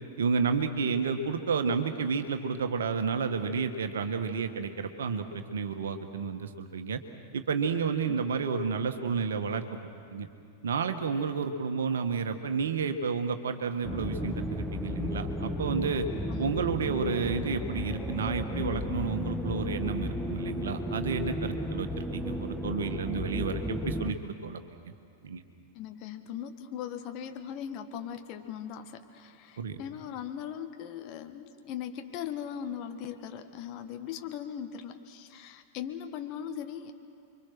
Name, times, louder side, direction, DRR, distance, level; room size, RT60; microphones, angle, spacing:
voice 1, 0.2-7.0 7.3-9.7 10.1-10.3 10.6-16.1 16.4-24.6 25.2-25.4 29.6-29.8, right 5 dB, 65° right, 7 dB, 1.7 m, -31 dB
sound 1, 13.8-24.1, equal, ahead, 1.3 m, -34 dB
voice 2, 25.7-36.9, left 9 dB, 40° left, 7 dB, 1.6 m, -39 dB
29.0 x 23.5 x 6.2 m, 2.4 s
figure-of-eight pair, 95°, 0 cm